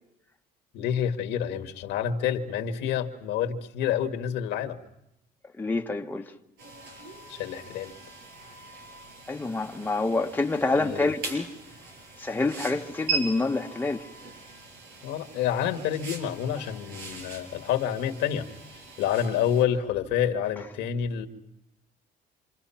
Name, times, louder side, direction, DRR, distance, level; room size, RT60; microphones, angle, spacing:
voice 1, 0.7-4.8 7.3-7.9 10.8-11.1 15.0-18.5 19.0-21.3, left 9 dB, 90° left, 1.9 m, -28 dB
voice 2, 5.6-6.2 9.3-11.5 12.2-14.0, left 3 dB, 10° left, 1.3 m, -27 dB
sound 1, 6.6-19.6, right 5 dB, 85° right, 5.9 m, -40 dB
27.5 x 27.5 x 5.8 m
cardioid pair, 110°, 17 cm